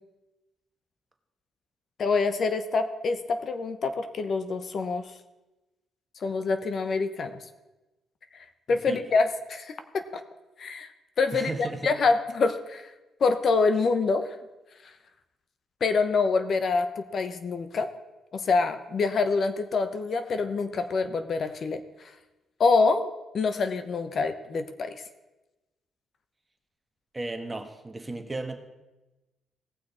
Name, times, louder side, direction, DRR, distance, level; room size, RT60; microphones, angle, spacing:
voice 1, 2.0-5.1 6.2-7.4 8.7-10.2 10.6-10.9 11.2-12.9 13.2-14.3 15.8-17.9 18.3-21.8 22.6-25.0, left 4 dB, 50° left, 9 dB, 0.8 m, -26 dB
voice 2, 8.7-9.0 11.3-11.9 27.1-28.6, right 2 dB, 20° right, 6 dB, 1.3 m, -35 dB
17.5 x 6.3 x 4.3 m, 1.1 s
cardioid pair, 90°, 0 cm